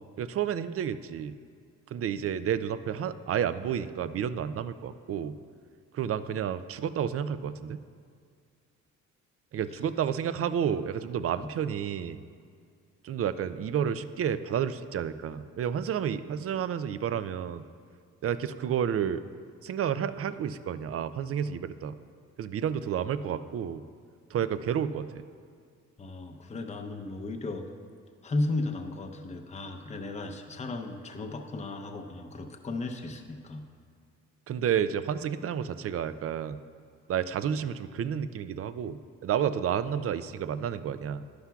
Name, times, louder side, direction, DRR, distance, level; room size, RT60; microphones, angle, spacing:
voice 1, 0.2-1.4 1.9-5.4 5.9-7.8 9.5-12.2 13.0-17.6 18.2-19.2 19.6-22.0 22.4-23.8 24.3-25.1 34.5-36.6 37.1-41.3, right 8 dB, 50° right, 13 dB, 0.5 m, -30 dB
voice 2, 26.0-27.7 28.2-33.6, left 2 dB, 25° left, 5 dB, 0.7 m, -35 dB
11.5 x 11.0 x 2.3 m, 2.2 s
cardioid pair, 90°, 30 cm